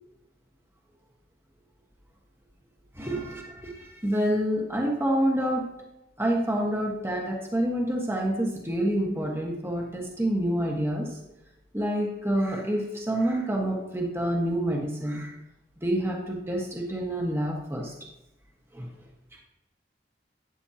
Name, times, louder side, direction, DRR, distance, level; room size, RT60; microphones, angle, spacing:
voice 1, 2.9-5.7 6.2-11.2 11.7-15.3 15.8-17.9 18.7-18.9, right 1 dB, 15° right, -1 dB, 1.5 m, -27 dB
12.5 x 9.6 x 2.9 m, 0.92 s
head